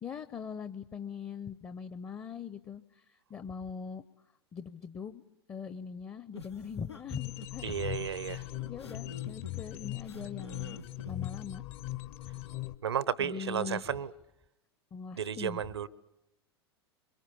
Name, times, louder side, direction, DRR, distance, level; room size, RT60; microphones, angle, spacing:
voice 1, 0.0-4.0 4.5-5.2 5.5-7.7 8.2-10.8 11.1-11.6 13.2-13.8 14.9-15.6, left 6 dB, 20° left, 12 dB, 0.8 m, -41 dB
sound 1, 6.3-11.7, left 2 dB, 90° left, 1.4 m, -48 dB
sound 2, 7.1-12.8, left 18 dB, 45° left, 1.1 m, -40 dB
voice 2, 7.6-8.4 12.8-14.1 15.2-15.9, right 8 dB, 75° right, 20 dB, 0.9 m, -33 dB
24.5 x 23.0 x 7.0 m, 0.87 s
figure-of-eight pair, 90°, 14 cm